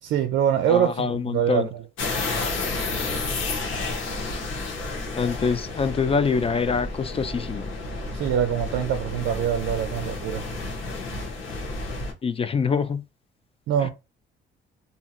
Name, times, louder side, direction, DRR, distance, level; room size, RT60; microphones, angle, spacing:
voice 1, 0.0-1.8 8.1-10.4 13.7-13.9, right 9 dB, 75° right, 0.5 m, -24 dB
voice 2, 0.7-1.7 5.2-7.7 12.2-13.0, left 5 dB, 30° left, 0.3 m, -25 dB
sound 1, 2.0-12.1, left 3 dB, 80° left, 1.0 m, -31 dB
2.9 x 2.7 x 2.4 m
cardioid pair, 90°, 20 cm